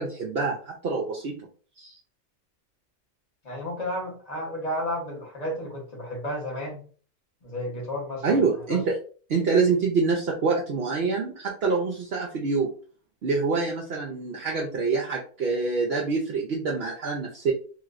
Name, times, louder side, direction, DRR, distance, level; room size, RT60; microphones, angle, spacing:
voice 1, 0.0-1.5 1.8-1.9 8.2-9.0 9.3-12.7 13.2-17.5, right 4 dB, 60° right, -2 dB, 0.8 m, -26 dB
voice 2, 3.4-6.9 7.4-8.4 8.7-8.8, left 1 dB, 35° left, -1 dB, 1.1 m, -32 dB
3.2 x 3.0 x 2.4 m, 0.41 s
omnidirectional pair, 1.2 m